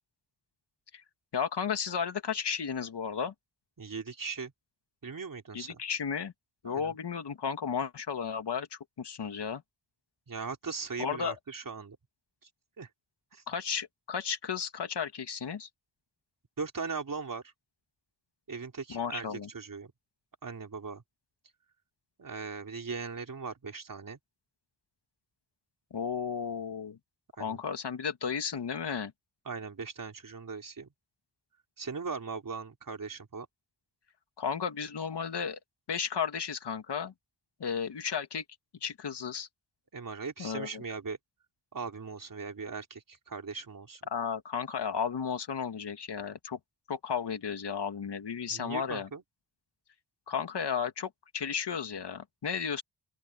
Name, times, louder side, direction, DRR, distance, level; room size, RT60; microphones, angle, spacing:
voice 1, 1.3-3.3 5.5-6.3 6.6-9.6 11.0-11.4 13.5-15.7 18.9-19.5 25.9-27.0 27.4-29.1 34.4-35.6 35.9-37.1 37.6-38.4 38.8-39.5 40.4-40.8 44.1-46.6 46.9-49.1 50.3-52.8, left 6 dB, 80° left, 2.5 m, -34 dB
voice 2, 3.8-4.5 5.0-5.8 6.6-6.9 10.3-12.0 12.8-12.9 13.3-13.4 16.6-17.4 18.5-19.3 19.5-19.9 20.4-21.0 22.2-24.2 27.4-27.6 29.5-30.9 31.8-33.5 39.9-41.2 41.7-44.0 48.5-49.2, right 5 dB, 55° right, 4.1 m, -39 dB
open air
wide cardioid pair, 105°, 41 cm